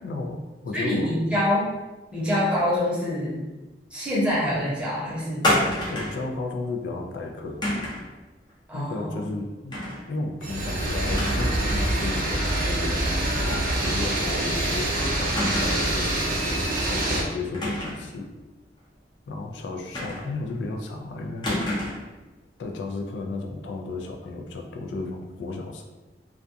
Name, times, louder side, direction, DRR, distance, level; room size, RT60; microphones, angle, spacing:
voice 1, 0.0-1.3 5.9-7.6 8.7-9.8 10.1-16.4 16.9-18.3 19.3-21.5 22.6-25.9, left 3 dB, 90° left, 3 dB, 0.3 m, -34 dB
voice 2, 0.7-1.7 2.1-3.4 3.9-5.5 8.7-9.2, left 1 dB, 5° right, -8 dB, 0.8 m, -25 dB
sound 1, 5.4-6.3 7.6-8.1 9.7-10.0 10.4-10.5 11.1-11.6 11.9-12.0 13.6-13.9 14.2-14.3 15.3-16.0 17.5-18.1 19.9-20.5 21.4-22.1, left 1 dB, 25° left, 0.6 m, -28 dB
sound 2, 10.4-17.2, right 1 dB, 50° right, 0.5 m, -25 dB
2.3 x 2.2 x 2.6 m, 1.1 s
head